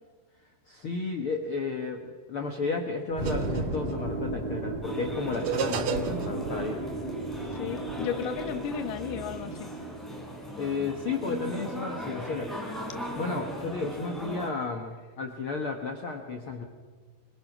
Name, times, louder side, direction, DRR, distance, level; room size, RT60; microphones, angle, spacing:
voice 1, 0.7-6.8 10.6-12.6 13.2-16.6, left 4 dB, 85° left, 3 dB, 1.2 m, -33 dB
sound 1, 3.1-8.1, right 7 dB, 70° right, 1.7 m, -35 dB
sound 2, 3.2-10.1, right 2 dB, 30° right, 4.0 m, -35 dB
sound 3, 4.8-14.5, equal, ahead, 4.0 m, -38 dB
voice 2, 7.5-9.7, left 8 dB, 65° left, 7 dB, 2.7 m, -34 dB
24.5 x 20.5 x 6.1 m, 1.5 s
omnidirectional pair, 4.7 m